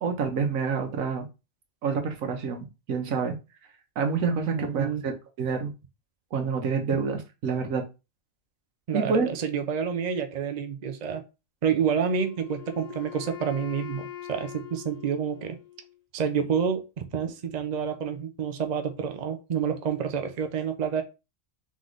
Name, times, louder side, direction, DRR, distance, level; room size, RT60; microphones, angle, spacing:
voice 1, 0.0-1.3 1.8-3.4 4.0-5.1 5.4-5.7 6.3-7.9 8.9-9.3, right 5 dB, 85° right, 1.4 m, -27 dB
voice 2, 4.5-5.1 8.9-11.2 11.6-15.6 16.1-21.0, right 7 dB, 45° right, 0.6 m, -28 dB
Wind instrument woodwind instrument, 12.0-16.0, left 11 dB, 35° left, 0.8 m, -43 dB
3.8 x 3.2 x 3.9 m
omnidirectional pair, 1.4 m